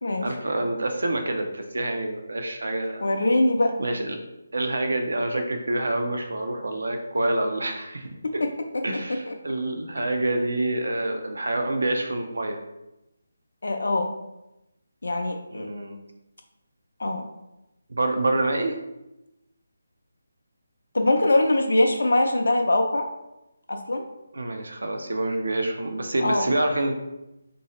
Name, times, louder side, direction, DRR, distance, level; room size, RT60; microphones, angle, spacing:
voice 1, 0.2-3.1 3.8-4.2 4.5-8.4 8.8-12.6 15.5-16.0 17.9-18.8 24.3-27.0, right 2 dB, 85° right, 5 dB, 0.5 m, -27 dB
voice 2, 3.0-3.7 8.2-8.3 9.3-9.4 13.6-14.1 15.0-15.7 17.0-17.3 20.9-23.1 23.7-24.0 26.2-26.5, left 2 dB, 80° left, 3 dB, 0.4 m, -22 dB
3.1 x 2.6 x 2.9 m, 0.93 s
figure-of-eight pair, 170°, 0 cm